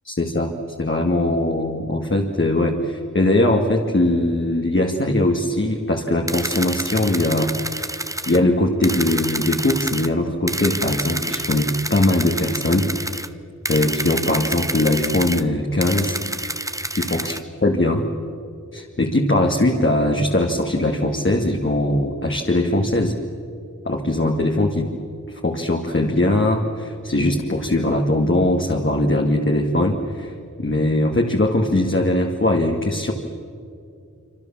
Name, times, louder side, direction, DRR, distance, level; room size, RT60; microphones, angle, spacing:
voice 1, 0.0-0.5 0.8-7.9 8.3-13.3 13.7-16.2 17.0-17.4 17.6-18.1 18.7-23.1 23.9-24.9 25.3-30.3 30.6-33.1, left 1 dB, 40° left, 1 dB, 1.9 m, -20 dB
sound 1, 6.3-8.4 8.8-10.1 10.5-13.3 13.6-15.4 15.8-17.4, right 1 dB, 10° right, 0.8 m, -28 dB
26.5 x 26.0 x 7.2 m, 2.5 s
wide cardioid pair, 70°, 30 cm